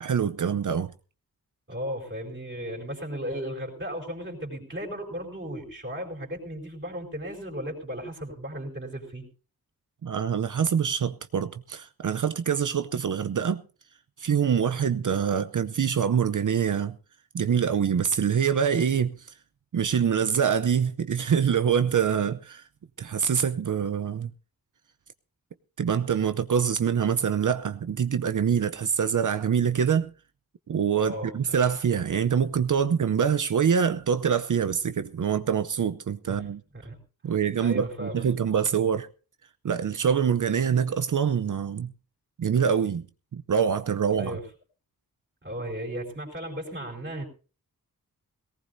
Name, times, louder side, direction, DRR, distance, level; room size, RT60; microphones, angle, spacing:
voice 1, 0.0-0.9 10.0-13.6 14.2-17.0 17.3-19.2 19.7-22.6 23.0-24.3 25.8-30.1 30.7-36.6 37.2-39.1 39.6-41.9 42.4-43.0 43.3-44.4, right 7 dB, 55° right, 0.7 m, -25 dB
voice 2, 1.7-9.3 31.0-31.3 36.3-36.5 36.8-37.0 37.6-38.3 44.2-44.4 45.4-47.3, equal, 30° right, 4.2 m, -35 dB
19.0 x 18.0 x 2.7 m
wide cardioid pair, 105°, 36 cm